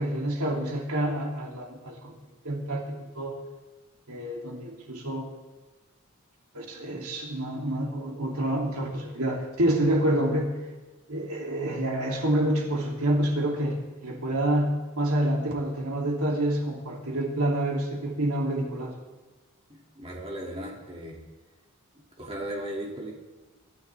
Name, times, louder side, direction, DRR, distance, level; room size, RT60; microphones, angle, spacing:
voice 1, 0.0-2.1 2.4-3.4 4.1-5.3 6.5-10.6 11.1-18.9, right 1 dB, 90° right, -1 dB, 3.0 m, -28 dB
voice 2, 19.7-21.2 22.2-23.1, right 1 dB, 25° right, -2 dB, 2.5 m, -36 dB
23.0 x 13.5 x 3.5 m, 1.2 s
head